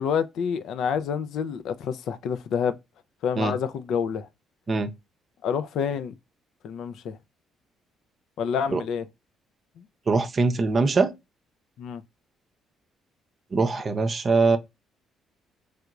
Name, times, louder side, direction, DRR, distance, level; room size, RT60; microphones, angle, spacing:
voice 1, 0.0-2.8 3.2-4.3 5.4-6.1 6.6-7.2 8.4-9.1 9.8-9.9 11.8-12.0, left 7 dB, 70° left, 0.4 m, -28 dB
voice 2, 10.1-11.1 13.5-14.6, right 3 dB, 40° right, 0.6 m, -22 dB
3.3 x 2.9 x 2.4 m
supercardioid pair, 70°, 0 cm